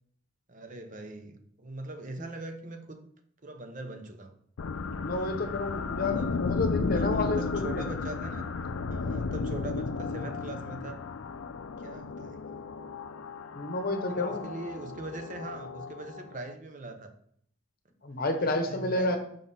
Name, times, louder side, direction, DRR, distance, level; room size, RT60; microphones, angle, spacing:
voice 1, 0.5-3.1 3.4-4.3 4.9-5.1 6.1-6.4 6.9-8.5 8.9-11.0 11.8-12.4 14.1-17.1 18.4-19.2, right 2 dB, 40° right, 6 dB, 0.8 m, -42 dB
sound 1, 4.6-16.5, left 4 dB, 80° left, 0.5 m, -34 dB
voice 2, 5.0-7.8 13.5-14.5 18.0-19.2, left 2 dB, 45° left, 5 dB, 1.0 m, -30 dB
5.6 x 5.4 x 4.2 m, 0.66 s
head